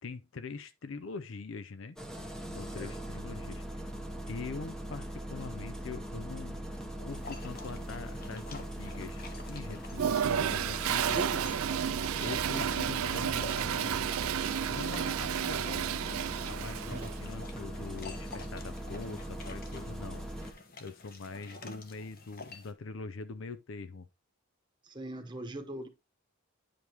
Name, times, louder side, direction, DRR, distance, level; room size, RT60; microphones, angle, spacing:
voice 1, 0.0-2.0 2.5-3.8 4.3-6.7 7.0-11.4 12.2-14.1 14.7-15.9 16.5-24.1, left 4 dB, 60° left, 0.5 m, -43 dB
Engine starting, 2.0-20.5, right 1 dB, 5° left, 0.8 m, -40 dB
dog eating, 7.1-22.7, left 3 dB, 40° left, 1.1 m, -49 dB
Toilet flush, 9.9-17.2, right 9 dB, 75° right, 0.4 m, -32 dB
voice 2, 11.1-11.5 16.9-17.1 24.8-25.9, right 1 dB, 20° right, 1.0 m, -40 dB
9.7 x 5.1 x 2.9 m
head